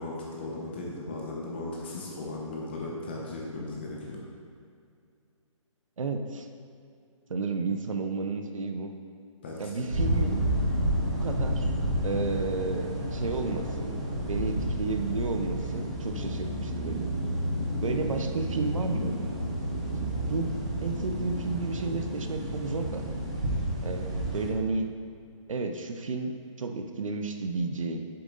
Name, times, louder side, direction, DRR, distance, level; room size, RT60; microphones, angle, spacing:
voice 1, 0.0-4.2 9.4-9.9, left 2 dB, 20° left, -3 dB, 0.9 m, -37 dB
voice 2, 6.0-6.5 7.3-8.9 9.6-10.5 11.0-11.7 12.0-14.0 14.2-17.1 17.8-19.2 20.0-20.5 20.8-23.0 23.8-24.9 25.5-28.1, right 3 dB, 75° right, 6 dB, 0.8 m, -32 dB
sound 1, 9.9-24.5, right 1 dB, 10° right, 0.3 m, -30 dB
7.6 x 7.0 x 3.9 m, 2.3 s
hypercardioid pair, 175°, 17 cm